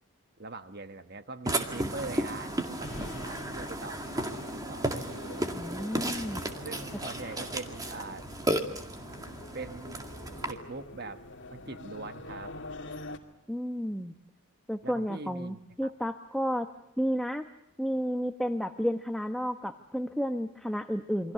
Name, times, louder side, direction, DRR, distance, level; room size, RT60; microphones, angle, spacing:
voice 1, 0.4-5.1 6.6-8.3 9.5-10.0 10.5-11.2 11.5-12.5 14.8-15.9, right 3 dB, 45° right, 10 dB, 1.2 m, -42 dB
Burping eructation, 1.5-10.5, right 1 dB, 15° right, 2.1 m, -34 dB
sound 1, 1.9-13.2, left 2 dB, 55° left, 2.5 m, -45 dB
voice 2, 5.4-6.4 13.5-14.1 14.7-16.7 17.0-17.5 17.8-21.3, equal, ahead, 6 dB, 1.0 m, -32 dB
28.5 x 25.0 x 6.8 m, 0.83 s
head